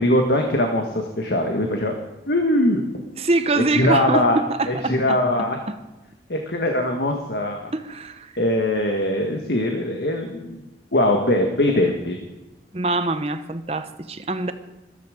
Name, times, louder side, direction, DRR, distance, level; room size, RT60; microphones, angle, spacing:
voice 1, 0.0-1.9 2.3-3.0 3.7-4.4 4.7-5.6 6.3-7.7 8.4-10.6 10.9-12.2, left 1 dB, 70° left, 3 dB, 1.6 m, -21 dB
voice 2, 3.1-5.8 7.7-8.3 12.7-14.5, right 2 dB, 35° right, 10 dB, 0.9 m, -25 dB
14.0 x 13.5 x 5.1 m, 1.0 s
head